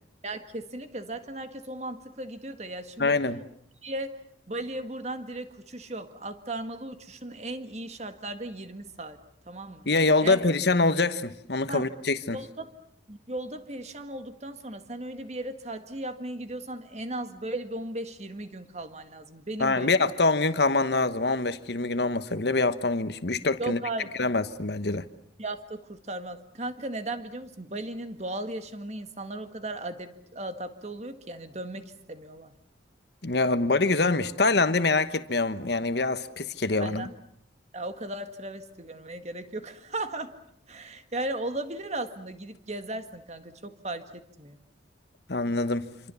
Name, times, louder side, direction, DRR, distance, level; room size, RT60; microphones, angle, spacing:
voice 1, 0.2-3.2 3.8-9.2 9.5-9.9 10.2-10.5 11.7-11.8 12.3-12.7 13.1-20.2 23.6-24.1 25.4-32.5 36.8-37.1 37.7-40.3 40.7-44.6, right 2 dB, 35° right, 1.8 m, -36 dB
voice 2, 3.0-3.4 9.9-12.4 19.6-23.8 24.2-25.0 33.2-37.1 45.3-45.9, left 3 dB, 60° left, 1.2 m, -25 dB
27.0 x 25.5 x 7.0 m
head